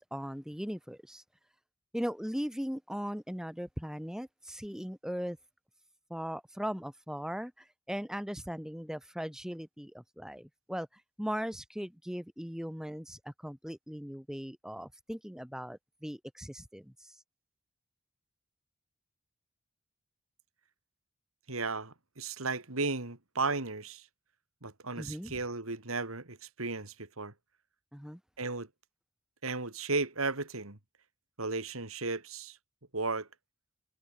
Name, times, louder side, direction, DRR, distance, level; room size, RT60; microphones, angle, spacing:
voice 1, 0.1-1.2 1.9-5.4 6.1-17.2 25.0-25.4 27.9-28.2, equal, 5° right, 1.3 m, -39 dB
voice 2, 21.5-24.1 24.6-27.3 28.4-28.7 29.4-30.8 31.4-32.6 32.9-33.3, right 3 dB, 85° right, 3.1 m, -35 dB
head